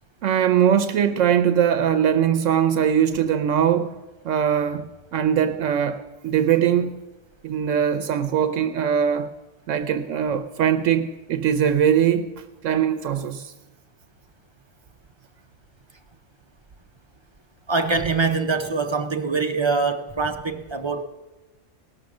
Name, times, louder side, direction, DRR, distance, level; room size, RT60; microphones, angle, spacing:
voice 1, 0.2-7.0 7.4-9.3 9.7-12.3 12.6-13.5, right 9 dB, 80° right, 1.0 m, -21 dB
voice 2, 17.7-21.0, right 4 dB, 35° right, 0.5 m, -24 dB
18.0 x 6.4 x 7.0 m
omnidirectional pair, 1.3 m